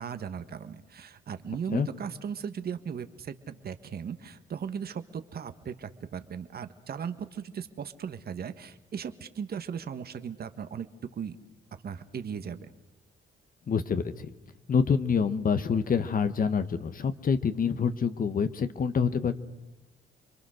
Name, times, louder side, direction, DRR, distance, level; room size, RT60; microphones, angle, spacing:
voice 1, 0.0-10.9 11.2-11.4 11.8-12.7, right 7 dB, 50° right, 10 dB, 1.5 m, -37 dB
voice 2, 13.7-14.3 14.7-19.3, left 6 dB, 45° left, 11 dB, 1.4 m, -26 dB
30.0 x 23.0 x 6.5 m, 0.99 s
cardioid pair, 90°, 20 cm